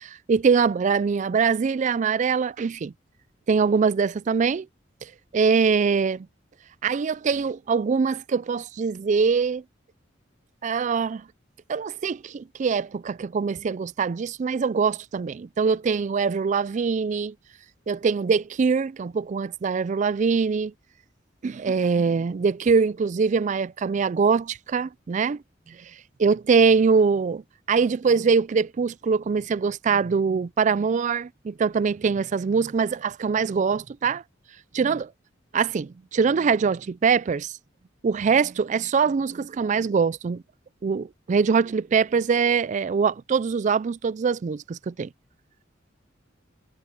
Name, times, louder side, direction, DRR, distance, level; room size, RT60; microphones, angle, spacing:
voice 1, 0.3-2.9 3.5-4.7 5.0-6.3 6.8-9.6 10.6-11.2 11.7-17.3 17.9-20.7 21.4-25.4 25.7-25.8 26.2-27.4 27.7-34.2 34.7-35.1 35.5-37.5 38.0-40.4 40.8-45.1, right 5 dB, 40° right, 0.3 m, -23 dB
head